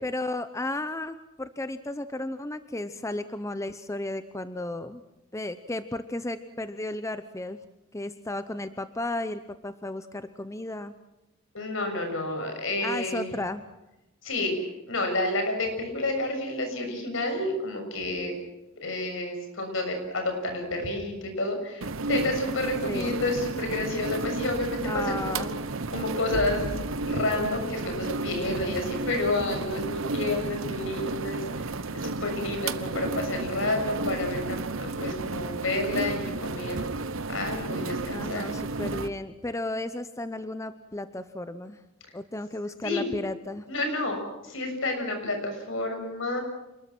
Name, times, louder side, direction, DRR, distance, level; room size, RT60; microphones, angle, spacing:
voice 1, 0.0-5.0 5.3-7.6 7.9-10.9 12.8-13.6 22.9-23.2 24.8-25.6 38.1-41.8 42.1-43.7, left 2 dB, 15° left, 11 dB, 0.8 m, -34 dB
voice 2, 11.5-13.3 14.2-14.6 14.9-18.4 18.8-25.5 25.9-31.7 32.0-36.8 37.3-38.5 42.8-43.1 43.7-46.4, left 2 dB, 70° left, 4 dB, 6.8 m, -30 dB
sound 1, 21.8-39.1, right 3 dB, 70° right, 1.1 m, -32 dB
28.0 x 20.5 x 6.1 m, 0.96 s
head